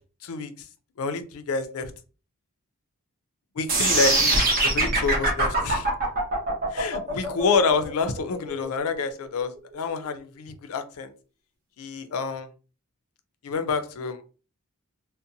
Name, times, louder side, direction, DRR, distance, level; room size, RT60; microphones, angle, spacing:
voice 1, 1.0-1.9 3.6-5.9 6.7-11.1 11.8-12.5 13.4-14.2, left 4 dB, 75° left, 9 dB, 0.4 m, -28 dB
sound 1, 3.7-9.7, right 2 dB, 40° right, 0.8 m, -23 dB
2.5 x 2.1 x 2.7 m, 0.36 s
head